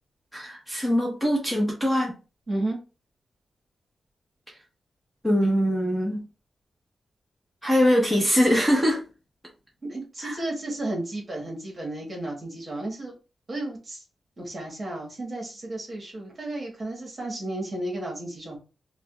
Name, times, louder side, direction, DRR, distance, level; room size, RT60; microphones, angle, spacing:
voice 1, 0.3-2.1 5.2-6.2 7.6-9.0 10.2-10.4, equal, 5° left, -2 dB, 1.1 m, -22 dB
voice 2, 2.5-2.8 9.8-13.1 13.5-14.0 14.4-18.6, right 1 dB, 35° right, -1 dB, 1.4 m, -33 dB
4.8 x 2.3 x 2.4 m, 0.32 s
wide cardioid pair, 135°, 0 cm